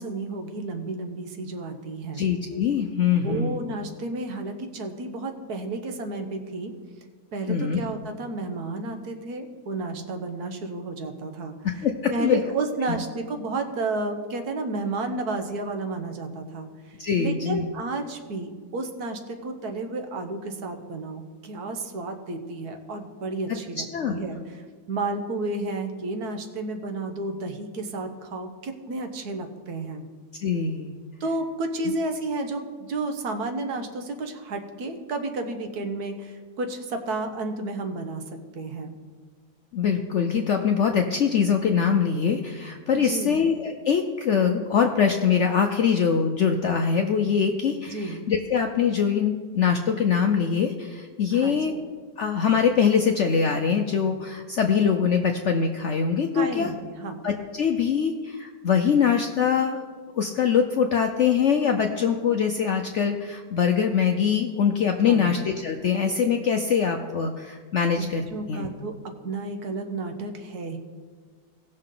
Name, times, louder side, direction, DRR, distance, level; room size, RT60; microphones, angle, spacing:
voice 1, 0.0-2.3 3.2-6.7 7.3-11.6 12.1-30.1 31.2-38.2 38.5-38.9 43.0-43.5 47.9-48.2 51.3-51.6 56.3-57.2 65.0-65.4 67.9-68.9 69.2-70.8, right 2 dB, 65° right, 6 dB, 1.5 m, -32 dB
voice 2, 2.1-3.6 7.5-7.8 11.6-12.4 17.0-17.7 23.9-24.1 30.4-30.9 31.9-32.0 39.7-51.7 52.2-56.7 57.2-59.9 60.1-68.7, left 7 dB, 65° left, 4 dB, 0.7 m, -23 dB
17.5 x 6.4 x 3.8 m, 1.5 s
omnidirectional pair, 1.8 m